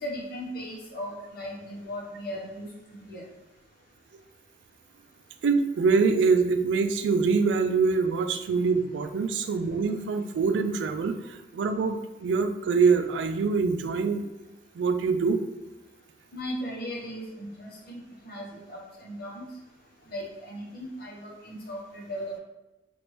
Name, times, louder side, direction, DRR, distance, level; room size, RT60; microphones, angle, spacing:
voice 1, 0.0-3.2 16.3-19.5 20.1-22.4, equal, 55° left, -3 dB, 0.9 m, -37 dB
voice 2, 5.4-14.2 14.8-15.4, right 4 dB, 85° right, 8 dB, 0.3 m, -24 dB
3.1 x 2.5 x 3.0 m, 1.0 s
head